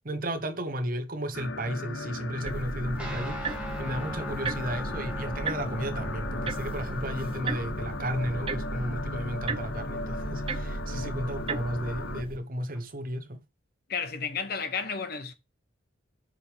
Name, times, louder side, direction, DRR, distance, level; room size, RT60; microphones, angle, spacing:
voice 1, 0.0-13.4, right 1 dB, 45° right, 1.1 m, -33 dB
sound 1, 1.3-12.2, left 3 dB, 75° left, 0.7 m, -37 dB
sound 2, 2.5-12.4, right 3 dB, 30° right, 0.5 m, -36 dB
Guitar, 3.0-12.8, right 1 dB, 5° right, 1.7 m, -43 dB
voice 2, 13.9-15.3, left 6 dB, 50° left, 1.1 m, -32 dB
7.7 x 5.1 x 3.5 m
head